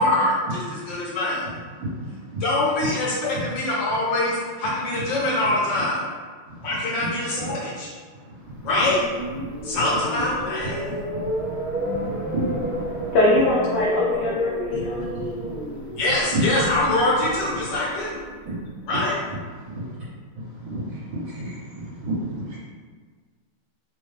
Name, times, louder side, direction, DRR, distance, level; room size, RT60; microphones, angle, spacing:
voice 1, 0.0-1.5 2.4-6.0 6.6-7.9 8.6-9.0 9.6-10.8 16.0-18.2 18.9-19.2, left 2 dB, 65° left, -6 dB, 1.4 m, -24 dB
voice 2, 6.5-7.1 7.4-7.6 8.3-8.6 11.4-11.5 12.3-13.1 14.7-15.6 16.3-16.4 18.5-18.6 19.7-19.9 20.4-22.6, right 2 dB, 65° right, -9 dB, 1.9 m, -31 dB
sound 1, 8.6-18.8, right 1 dB, 45° right, 1.7 m, -31 dB
voice 3, 13.1-15.1, left 2 dB, 85° left, -5 dB, 0.9 m, -21 dB
4.3 x 2.2 x 3.2 m, 1.5 s
omnidirectional pair, 2.4 m